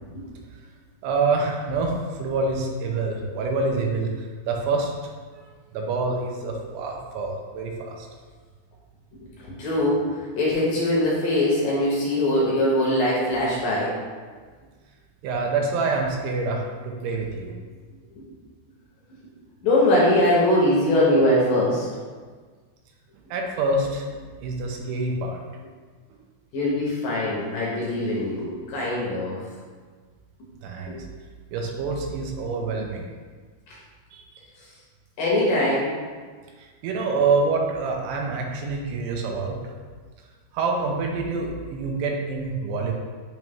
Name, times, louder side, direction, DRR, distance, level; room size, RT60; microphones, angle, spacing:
voice 1, 1.0-4.9 5.3-5.4 5.7-8.1 15.2-17.6 23.3-24.0 24.4-25.4 30.6-31.0 31.5-33.1 34.1-34.2 36.6-39.6 40.5-42.9, right 3 dB, 85° right, 1 dB, 2.8 m, -26 dB
voice 2, 9.4-13.9 19.6-21.9 26.5-29.3 33.7-33.8 35.2-35.9, left 1 dB, 70° left, -5 dB, 2.3 m, -22 dB
8.9 x 3.1 x 3.5 m, 1.5 s
omnidirectional pair, 4.8 m